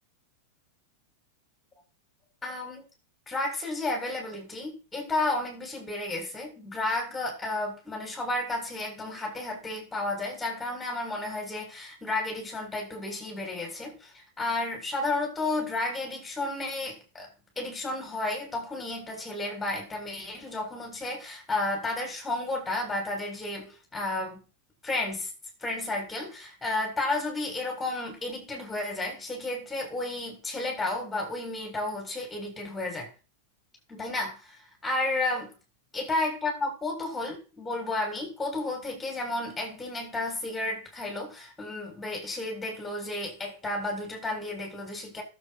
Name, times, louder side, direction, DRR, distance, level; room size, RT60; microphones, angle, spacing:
voice 1, 2.4-2.8 3.3-17.3 17.6-24.4 24.8-25.3 25.6-33.1 33.9-35.5 35.9-45.2, left 2 dB, 10° left, 7.4 m, -32 dB
12.0 x 8.6 x 4.5 m
figure-of-eight pair, 90°, 0 cm